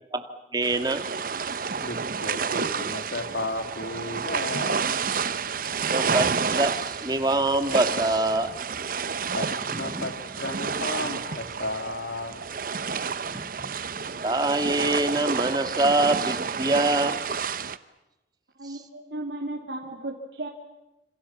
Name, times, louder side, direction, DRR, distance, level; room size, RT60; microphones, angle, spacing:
voice 1, 0.1-1.7 5.9-8.5 9.2-9.4 9.7-10.1 10.4-10.5 13.3-17.2 17.5-17.7 18.6-18.8, right 2 dB, 25° right, 7 dB, 2.1 m, -26 dB
sound 1, 0.6-17.8, right 5 dB, 50° right, 0.9 m, -30 dB
voice 2, 1.8-5.0 9.3-10.1 10.4-12.5 12.9-13.0, left 2 dB, 85° left, 6 dB, 3.2 m, -34 dB
voice 3, 18.6-20.5, right 2 dB, 80° right, -1 dB, 3.0 m, -35 dB
28.0 x 27.0 x 7.3 m, 0.96 s
head